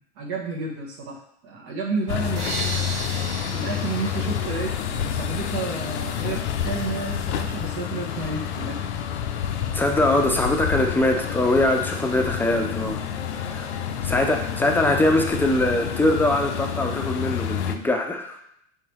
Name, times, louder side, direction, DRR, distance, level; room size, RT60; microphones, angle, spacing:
voice 1, 0.0-2.5 3.5-8.8, right 3 dB, 60° right, -1 dB, 0.9 m, -31 dB
sound 1, 2.1-17.8, left 8 dB, 75° left, 0.5 m, -29 dB
sound 2, 2.4-5.4, right 3 dB, 85° right, 0.9 m, -35 dB
voice 2, 9.7-13.0 13.3-13.7 14.0-18.4, left 1 dB, 5° left, 2 dB, 0.5 m, -22 dB
4.7 x 3.5 x 3.1 m, 0.74 s
hypercardioid pair, 85°, 35 cm